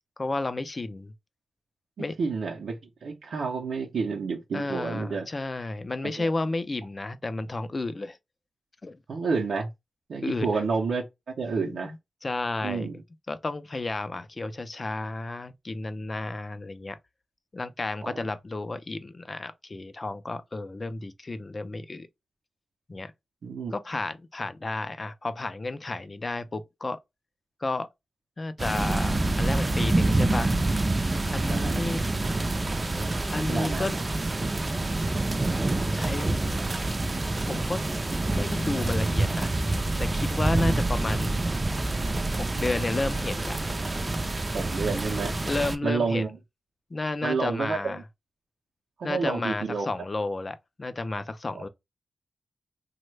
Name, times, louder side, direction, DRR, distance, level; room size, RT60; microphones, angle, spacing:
voice 1, 0.2-1.1 2.0-2.2 4.5-8.2 8.8-9.0 10.2-10.6 11.6-12.0 12.2-13.0 13.3-17.0 17.5-22.1 22.9-23.1 23.7-27.0 27.6-27.9 28.4-30.5 31.3-32.0 33.3-34.0 35.9-36.4 37.5-37.8 38.2-39.5 40.0-41.4 42.4-43.6 45.5-46.3 46.9-48.0 49.0-51.7, left 2 dB, 35° left, 0.4 m, -32 dB
voice 2, 2.0-5.3 6.0-6.3 9.1-9.7 10.1-11.0 11.4-11.9 12.6-13.0 18.0-18.2 23.4-23.7 31.5-31.8 33.3-34.0 40.5-40.8 44.5-45.4 45.8-46.4 47.2-48.0 49.0-49.9 51.5-51.6, right 4 dB, 85° right, 0.5 m, -30 dB
sound 1, 28.6-45.7, right 2 dB, 30° right, 0.4 m, -27 dB
3.1 x 2.1 x 3.2 m
wide cardioid pair, 85°, 0 cm